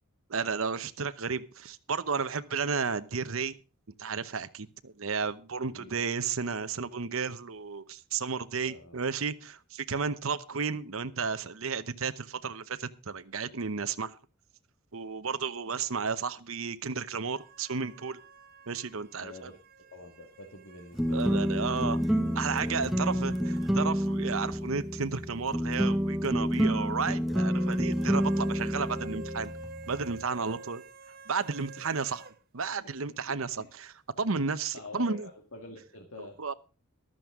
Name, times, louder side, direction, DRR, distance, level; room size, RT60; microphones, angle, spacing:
voice 1, 0.3-3.6 4.0-14.1 14.9-18.2 18.7-19.5 21.1-22.0 22.3-29.5 29.9-30.8 31.3-32.2 32.5-35.3 36.4-36.5, right 5 dB, 70° right, 12 dB, 0.9 m, -33 dB
voice 2, 5.6-5.9 8.6-9.0 19.2-19.6 19.9-21.4 22.7-23.1 28.7-28.9 29.9-30.0 30.3-30.5 31.8-31.9 33.6-33.7 34.7-36.4, left 2 dB, 65° left, 3 dB, 2.1 m, -47 dB
sound 1, 17.3-23.8 24.1-24.2 27.3-32.4, right 3 dB, 45° right, 1.1 m, -49 dB
sound 2, 20.9-30.2, equal, ahead, 0.7 m, -29 dB
14.0 x 12.5 x 3.7 m, 0.33 s
head